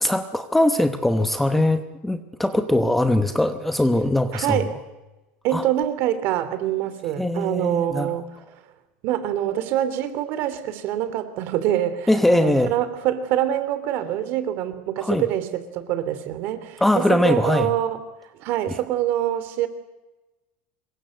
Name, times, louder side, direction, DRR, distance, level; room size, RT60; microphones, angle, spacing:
voice 1, 0.0-4.7 5.5-5.6 7.2-8.1 12.1-12.7 15.0-15.2 16.8-17.7 18.7-18.8, left 1 dB, 5° left, 8 dB, 1.0 m, -21 dB
voice 2, 4.3-4.7 5.4-8.3 9.0-18.0 18.4-19.7, right 12 dB, 45° right, 12 dB, 3.0 m, -25 dB
26.0 x 23.0 x 7.9 m, 1.1 s
supercardioid pair, 170°, 5 cm